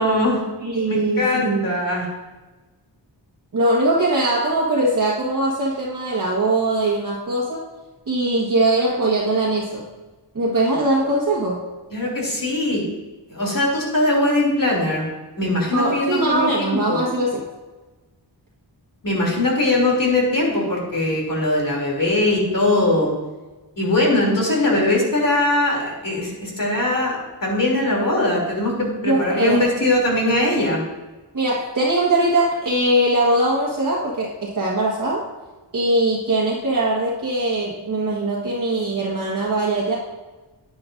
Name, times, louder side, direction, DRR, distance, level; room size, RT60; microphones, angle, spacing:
voice 1, 0.0-0.4 0.9-2.1 11.9-12.8 13.3-15.1 15.4-17.0 19.0-23.1 23.8-30.8, left 1 dB, 50° left, -2 dB, 2.8 m, -21 dB
voice 2, 0.6-1.7 3.5-7.7 8.1-9.8 10.3-11.6 15.7-17.4 29.0-29.6 31.3-35.2 35.7-40.0, right 2 dB, 45° right, -5 dB, 1.4 m, -21 dB
10.0 x 9.6 x 2.5 m, 1.2 s
wide cardioid pair, 100°, 44 cm